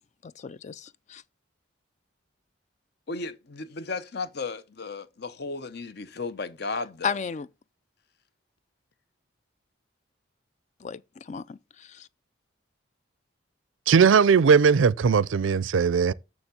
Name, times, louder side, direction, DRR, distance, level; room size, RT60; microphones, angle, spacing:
voice 1, 0.2-1.2 7.0-7.5 10.8-12.1, left 6 dB, 35° left, 0.4 m, -34 dB
voice 2, 3.1-7.2, left 4 dB, 55° left, 0.8 m, -34 dB
voice 3, 13.9-16.1, right 6 dB, 80° right, 0.4 m, -19 dB
7.1 x 6.6 x 6.7 m
head